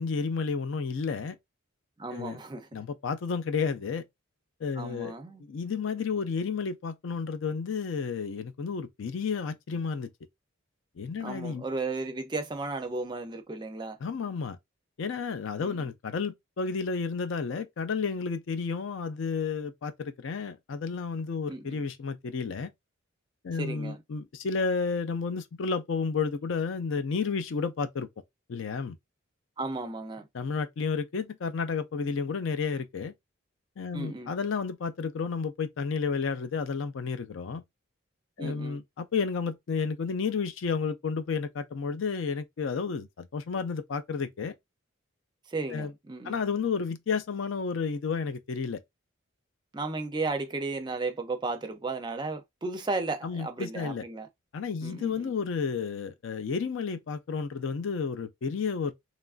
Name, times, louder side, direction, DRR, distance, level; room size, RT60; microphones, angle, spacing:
voice 1, 0.0-1.4 2.1-2.4 2.7-4.0 4.6-10.1 11.0-11.6 14.0-14.6 15.0-22.7 23.4-28.1 28.5-29.0 30.3-33.1 33.8-37.6 38.4-44.5 45.7-45.9 46.2-48.8 53.2-54.0 54.5-58.9, left 5 dB, 65° left, 0.4 m, -31 dB
voice 2, 2.0-2.8 4.8-5.4 11.2-14.0 15.6-15.9 21.5-21.8 23.6-24.0 29.6-30.3 33.9-34.3 38.4-38.8 45.5-46.4 49.7-54.3 54.8-55.3, right 3 dB, 20° right, 0.4 m, -34 dB
2.9 x 2.4 x 2.3 m
head